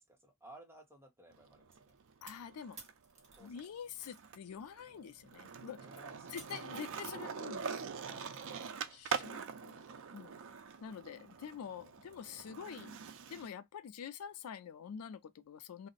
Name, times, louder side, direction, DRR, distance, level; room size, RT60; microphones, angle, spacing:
voice 1, 0.0-2.0 3.4-3.7 5.8-7.3 8.1-9.0, right 1 dB, 10° right, 0.8 m, -59 dB
Skateboard, 1.3-2.9 3.3-13.5, right 6 dB, 65° right, 0.4 m, -44 dB
sound 1, 1.7-4.3 4.6-7.2, right 3 dB, 30° right, 1.2 m, -57 dB
voice 2, 2.2-2.8 3.4-5.9 6.3-7.7 8.9-9.8 10.1-10.4 10.8-13.0 13.3-15.9, left 7 dB, 85° left, 0.4 m, -46 dB
2.5 x 2.0 x 3.8 m
head